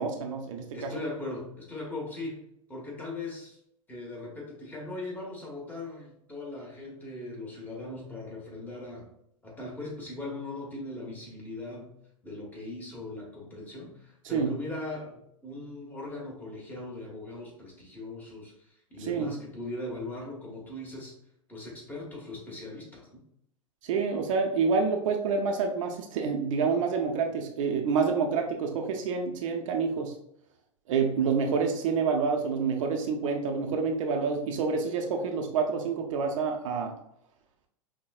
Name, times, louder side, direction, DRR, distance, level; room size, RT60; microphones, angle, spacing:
voice 1, 0.0-0.9 14.3-14.5 19.1-19.4 23.8-30.1 30.9-36.9, right 5 dB, 60° right, 3 dB, 0.6 m, -28 dB
voice 2, 0.7-2.4 2.7-3.6 3.9-9.1 9.4-11.9 12.2-21.1 21.5-23.2, left 2 dB, 10° left, -3 dB, 1.3 m, -39 dB
5.5 x 2.2 x 2.3 m, 0.75 s
hypercardioid pair, 100°, 18 cm